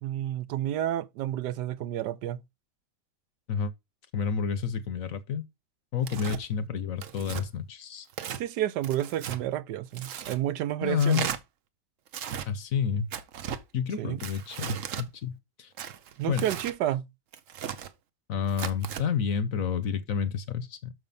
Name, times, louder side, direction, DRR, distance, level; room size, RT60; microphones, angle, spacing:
voice 1, 0.0-2.4 8.4-11.3 14.0-14.2 16.2-17.1, right 12 dB, 85° right, 1.3 m, -30 dB
voice 2, 4.1-5.4 5.9-8.1 10.8-11.3 12.5-13.1 13.7-15.7 16.3-16.4 18.3-20.9, left 7 dB, 60° left, 1.1 m, -29 dB
Tearing, 6.0-6.4 7.0-7.4 8.1-8.4 8.8-9.4 9.9-10.4 11.0-11.4 12.1-12.5 13.1-13.6 14.2-15.1 15.8-16.8 17.3-17.9 18.5-19.0, right 9 dB, 60° right, 1.0 m, -36 dB
6.5 x 5.8 x 5.4 m
omnidirectional pair, 1.8 m